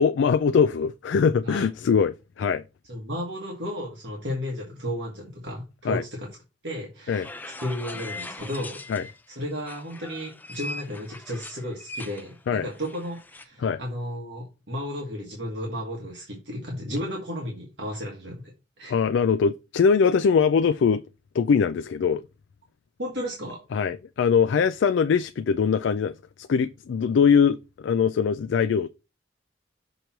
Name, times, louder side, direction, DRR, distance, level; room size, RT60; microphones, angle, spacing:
voice 1, 0.0-2.6 5.8-6.0 7.1-7.3 8.9-9.0 12.5-12.7 13.6-13.8 18.9-21.0 21.3-22.2 23.7-28.9, left 6 dB, 75° left, 0.3 m, -22 dB
voice 2, 2.9-6.3 6.6-7.2 7.6-18.5 18.8-19.0 23.0-23.6, equal, 65° right, 1.5 m, -33 dB
sound 1, 7.1-9.2 9.6-13.4, left 2 dB, 10° left, 0.5 m, -40 dB
6.6 x 3.1 x 5.7 m
head